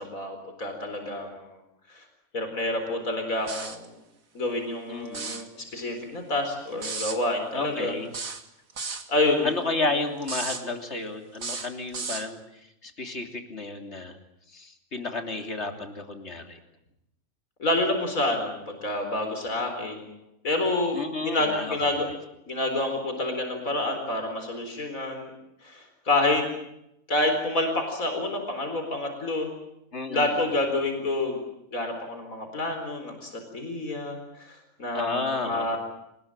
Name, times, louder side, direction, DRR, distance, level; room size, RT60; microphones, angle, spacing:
voice 1, 0.0-1.6 1.9-2.0 2.3-3.9 4.3-7.9 9.1-9.5 17.6-20.2 20.4-22.1 22.5-25.3 25.6-26.4 27.1-29.5 30.1-31.4 31.7-35.8, left 2 dB, 85° left, 4 dB, 4.6 m, -28 dB
sound 1, 3.5-3.9 5.1-5.5 6.8-7.2 8.1-9.1 10.2-10.6 11.4-12.3, right 4 dB, 80° right, 2.4 m, -34 dB
voice 2, 4.9-5.4 7.5-8.1 9.4-14.2 14.5-16.6 20.9-22.0 29.9-30.3 34.9-35.8, left 3 dB, 55° left, 5 dB, 3.5 m, -32 dB
26.0 x 20.0 x 9.0 m, 0.82 s
omnidirectional pair, 1.4 m